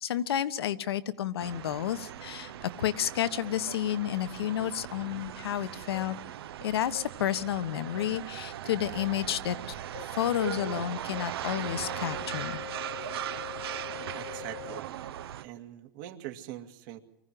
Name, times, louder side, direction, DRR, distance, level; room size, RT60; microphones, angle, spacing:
voice 1, 0.0-6.2 6.6-9.7 10.1-12.6, left 11 dB, 80° left, 13 dB, 1.3 m, -31 dB
sound 1, 1.4-15.4, right 11 dB, 75° right, 1.1 m, -39 dB
sound 2, 5.9-6.0 6.9-7.0 8.0-8.1 9.0-9.1 9.9-10.0 10.6-10.7 11.1-11.2 11.6-14.8, left 23 dB, 60° left, 0.8 m, -43 dB
voice 2, 14.1-14.9 15.4-17.0, right 13 dB, 55° right, 6 dB, 2.4 m, -43 dB
24.5 x 16.0 x 7.8 m, 0.85 s
hypercardioid pair, 115°, 13 cm